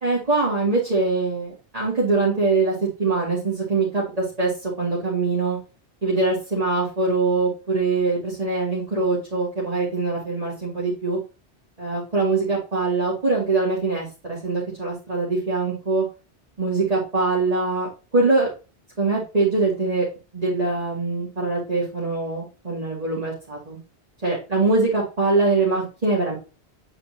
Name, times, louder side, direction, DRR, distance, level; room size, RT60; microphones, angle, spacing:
voice 1, 0.0-2.7 3.0-5.6 6.0-11.2 11.8-16.0 16.6-18.5 19.0-20.1 20.3-23.8 24.2-26.4, right 3 dB, 35° right, -7 dB, 2.3 m, -23 dB
8.9 x 4.3 x 2.8 m, 0.32 s
omnidirectional pair, 1.2 m